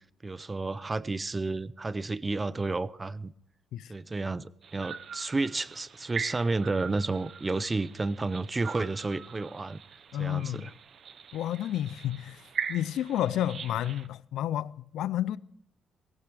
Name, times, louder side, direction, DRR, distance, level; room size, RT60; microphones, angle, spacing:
voice 1, 0.2-3.3 3.9-9.8 10.2-10.7, right 3 dB, 25° right, 0.5 m, -31 dB
sound 1, 4.6-14.1, right 7 dB, 55° right, 0.8 m, -41 dB
voice 2, 10.1-10.7 11.3-12.4 12.7-15.4, left 12 dB, 80° left, 0.4 m, -31 dB
16.0 x 15.5 x 3.4 m
cardioid pair, 90°, 0 cm